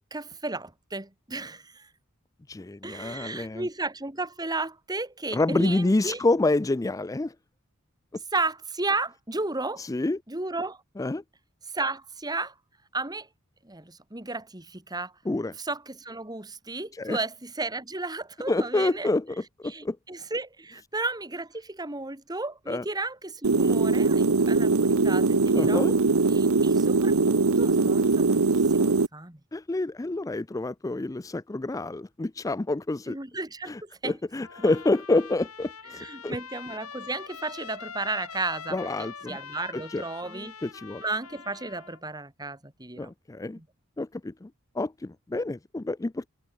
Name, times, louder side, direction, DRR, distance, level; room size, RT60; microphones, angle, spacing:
voice 1, 0.0-1.9 2.8-6.2 8.3-9.9 10.3-10.8 11.7-12.5 12.9-13.3 13.6-15.1 15.6-19.1 19.6-25.9 26.3-28.4 28.7-29.4 33.1-34.2 34.6-34.7 35.9-38.8 39.3-40.5 41.0-43.1 43.5-43.7, right 2 dB, 20° right, 2.7 m, -33 dB
voice 2, 2.5-3.7 5.3-7.3 9.8-10.2 11.0-11.2 15.3-15.6 16.9-17.2 18.5-20.0 22.7-22.8 25.5-26.0 29.5-33.2 33.6-36.4 38.7-39.4 39.7-40.0 40.3-41.0 43.0-43.6 44.0-44.5 44.8-46.3, left 2 dB, 15° left, 0.4 m, -28 dB
sound 1, 23.4-29.1, right 3 dB, 75° right, 0.9 m, -21 dB
Trumpet, 34.4-42.0, left 6 dB, 85° left, 4.9 m, -43 dB
head